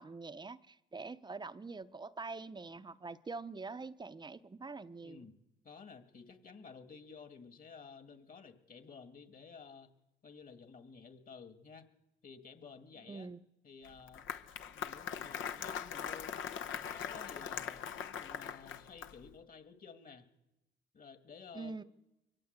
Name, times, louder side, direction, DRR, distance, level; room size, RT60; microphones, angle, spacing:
voice 1, 0.0-5.3 13.0-13.4 21.5-21.8, right 4 dB, 20° right, 13 dB, 0.7 m, -45 dB
voice 2, 5.0-5.4 5.6-9.9 10.2-11.9 12.2-13.3 13.6-14.3 14.7-17.8 18.2-20.3 20.9-21.8, left 5 dB, 45° left, 7 dB, 2.1 m, -53 dB
Applause, 13.8-19.3, left 8 dB, 75° left, 1.1 m, -41 dB
23.0 x 18.0 x 8.1 m, 0.98 s
cardioid pair, 90°, 20 cm